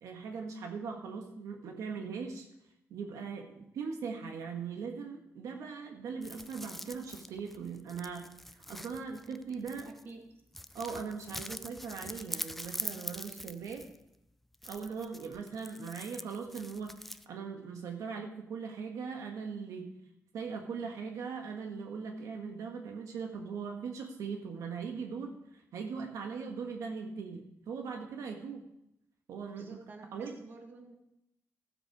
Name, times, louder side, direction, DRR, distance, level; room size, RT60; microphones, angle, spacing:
voice 1, 0.0-2.5 2.9-8.2 8.5-9.9 10.7-13.9 14.6-19.9 20.3-28.6 29.3-29.7 30.1-30.3, right 5 dB, 85° right, 3 dB, 1.5 m, -40 dB
sound 1, 6.2-10.1 10.5-14.1 14.5-17.3, left 1 dB, 5° left, 0.4 m, -44 dB
voice 2, 9.8-10.2 29.6-30.9, right 3 dB, 40° right, 3 dB, 1.8 m, -50 dB
15.0 x 7.6 x 4.8 m, 0.81 s
wide cardioid pair, 145°, 5 cm